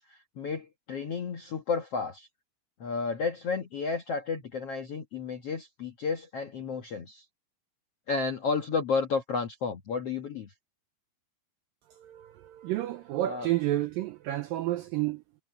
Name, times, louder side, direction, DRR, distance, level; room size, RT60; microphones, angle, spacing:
voice 1, 0.0-2.3 2.8-7.2 8.1-10.5 13.2-13.5, left 5 dB, 65° left, 1.5 m, -32 dB
voice 2, 11.9-15.2, right 15 dB, 85° right, 2.0 m, -30 dB
omnidirectional pair, 4.9 m